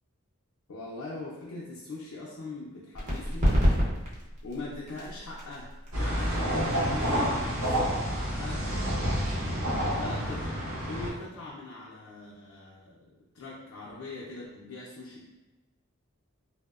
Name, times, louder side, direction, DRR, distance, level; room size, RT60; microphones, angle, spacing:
voice 1, 0.7-3.5 4.4-7.1 7.4-8.0 8.4-9.0 10.0-10.6 10.9-15.3, left 2 dB, 85° left, -5 dB, 0.4 m, -42 dB
sound 1, 2.9-10.3, equal, 35° right, 0.6 m, -31 dB
sound 2, 5.9-11.1, equal, 80° right, 0.7 m, -29 dB
2.8 x 2.0 x 2.3 m, 1.1 s
head